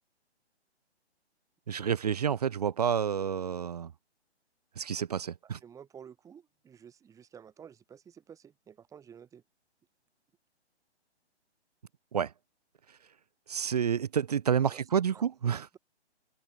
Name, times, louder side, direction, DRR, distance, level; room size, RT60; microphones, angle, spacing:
voice 1, 1.7-3.9 4.8-5.6 12.1-12.3 13.5-15.7, right 8 dB, 35° right, 0.6 m, -29 dB
voice 2, 5.6-9.4 14.6-14.8 15.1-15.8, right 8 dB, 10° right, 4.0 m, -52 dB
open air
figure-of-eight pair, 135°, 34 cm